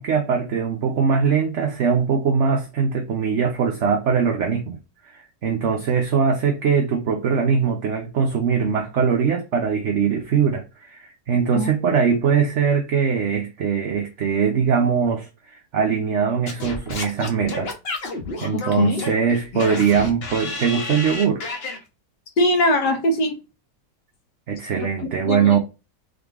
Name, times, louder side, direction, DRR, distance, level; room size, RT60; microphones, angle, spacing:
voice 1, 0.0-4.8 5.0-17.7 18.4-21.5 24.5-25.6, right 6 dB, 60° right, 0.8 m, -21 dB
Singing / Scratching (performance technique), 16.5-21.8, left 3 dB, 40° left, 1.1 m, -31 dB
voice 2, 18.5-19.0 22.4-23.4 25.3-25.6, left 1 dB, 70° left, 1.5 m, -21 dB
3.8 x 3.7 x 3.5 m
omnidirectional pair, 1.9 m